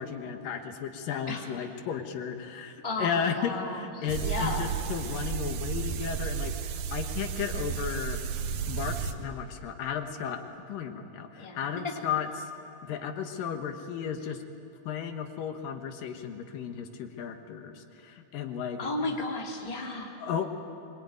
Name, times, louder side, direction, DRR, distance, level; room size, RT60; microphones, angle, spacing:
voice 1, 0.0-6.5 6.9-8.2 8.7-10.4 10.7-12.3 12.8-14.4 14.9-19.1 20.2-20.5, left 7 dB, 80° left, 6 dB, 3.0 m, -34 dB
voice 2, 2.8-4.6 11.4-11.9 18.8-20.2, left 2 dB, 10° left, 0 dB, 2.2 m, -34 dB
sound 1, 4.1-9.1, right 7 dB, 80° right, 2.7 m, -33 dB
24.0 x 23.5 x 9.5 m, 2.7 s
omnidirectional pair, 3.9 m